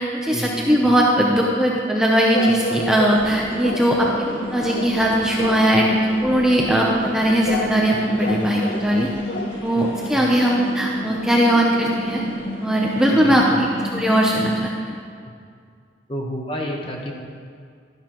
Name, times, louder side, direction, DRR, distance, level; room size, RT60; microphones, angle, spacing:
voice 1, 0.0-4.1 4.5-5.9 6.2-9.1 9.6-12.2 12.6-13.7 13.9-14.9, equal, 5° right, -3 dB, 0.7 m, -19 dB
sound 1, 2.3-3.3 3.6-4.3 4.6-5.0 5.4-5.7 7.5-7.8 8.2-8.9 9.3-9.6 10.0-10.1, left 2 dB, 50° left, 0.7 m, -29 dB
sound 2, 3.2-14.6, equal, 85° left, 2.0 m, -32 dB
voice 2, 13.2-13.6 16.1-17.1, equal, 30° left, 0 dB, 1.1 m, -29 dB
12.0 x 10.5 x 3.0 m, 2.2 s
head